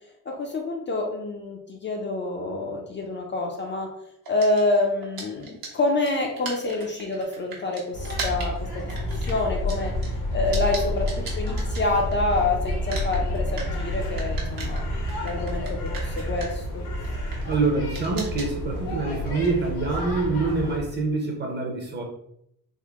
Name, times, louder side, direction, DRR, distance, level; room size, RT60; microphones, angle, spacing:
voice 1, 0.3-3.9 4.3-9.9 10.3-11.1 11.4-14.8 15.2-16.8, left 2 dB, 30° left, 1 dB, 0.4 m, -27 dB
sound 1, 4.2-12.4 12.7-21.0, right 4 dB, 75° right, 1.1 m, -39 dB
sound 2, 7.9-20.8, left 1 dB, 80° left, 1.1 m, -29 dB
voice 2, 17.5-22.0, right 3 dB, 30° right, 0 dB, 0.7 m, -26 dB
3.6 x 2.0 x 3.5 m, 0.76 s
cardioid pair, 145°, 36 cm